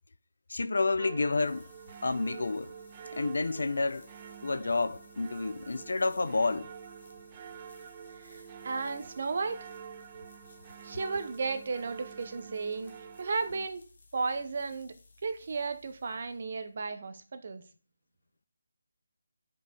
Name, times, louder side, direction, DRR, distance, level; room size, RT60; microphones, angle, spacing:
voice 1, 0.5-1.7 2.0-2.7 3.1-4.1 4.4-6.7, left 3 dB, 65° left, 0.5 m, -29 dB
sound 1, 1.0-16.8, left 3 dB, 40° left, 1.3 m, -59 dB
sound 2, 1.0-13.7, right 7 dB, 15° right, 0.4 m, -47 dB
voice 2, 8.2-9.6 10.8-12.9 13.2-13.9 14.1-14.9 15.2-17.6, right 4 dB, 35° right, 0.7 m, -34 dB
9.2 x 5.3 x 3.5 m
hypercardioid pair, 175°, 0 cm